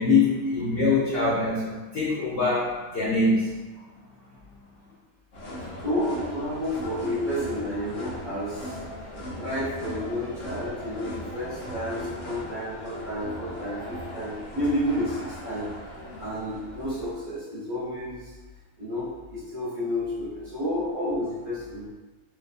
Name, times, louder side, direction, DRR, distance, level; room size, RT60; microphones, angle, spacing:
voice 1, 0.0-3.5, left 3 dB, 80° left, -7 dB, 0.5 m, -23 dB
sound 1, 5.3-17.1, equal, 55° left, 0.9 m, -38 dB
voice 2, 5.6-8.8 9.4-15.7 16.2-18.3 18.8-21.9, equal, 35° right, -11 dB, 0.8 m, -31 dB
2.6 x 2.1 x 2.5 m, 1.2 s
omnidirectional pair, 1.6 m